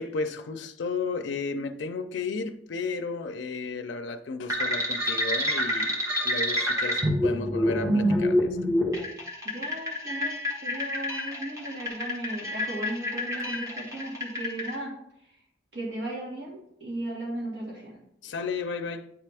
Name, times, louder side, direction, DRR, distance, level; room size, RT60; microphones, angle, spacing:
voice 1, 0.0-6.0 6.2-8.6 18.2-19.1, left 4 dB, 85° left, 0.4 m, -33 dB
sound 1, 4.5-14.7, equal, 15° right, 1.0 m, -27 dB
voice 2, 9.4-14.9 15.2-15.4 15.7-18.0, right 1 dB, 70° right, 1.6 m, -36 dB
9.4 x 3.3 x 3.4 m
head